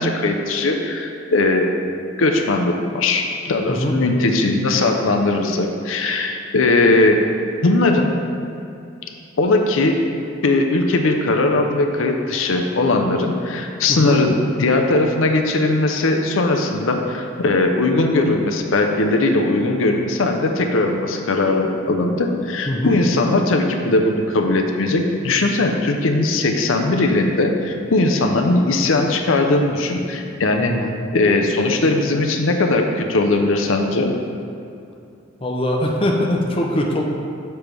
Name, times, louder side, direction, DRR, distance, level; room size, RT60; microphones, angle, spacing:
voice 1, 0.0-1.7 2.2-7.2 7.6-8.1 9.4-10.0 10.4-30.7 31.1-34.1, left 2 dB, 85° left, 3 dB, 0.6 m, -19 dB
voice 2, 30.6-30.9 35.4-37.0, left 1 dB, 30° left, 0 dB, 0.6 m, -21 dB
6.9 x 3.3 x 6.0 m, 2.6 s
head